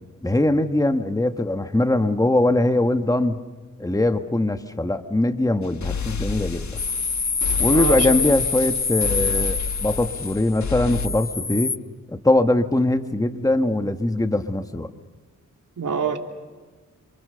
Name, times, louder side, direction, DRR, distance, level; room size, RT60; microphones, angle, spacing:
voice 1, 0.2-3.4 3.8-6.8 7.6-11.7 12.1-14.9, left 1 dB, 10° left, 7 dB, 1.6 m, -21 dB
sound 1, 5.6-11.1, left 5 dB, 60° left, 1.6 m, -31 dB
sound 2, 6.8-11.8, left 4 dB, 30° left, 0.9 m, -25 dB
voice 2, 7.7-8.2 15.8-16.2, right 6 dB, 70° right, 3 dB, 3.5 m, -25 dB
28.5 x 26.5 x 6.9 m, 1.3 s
wide cardioid pair, 85°, 33 cm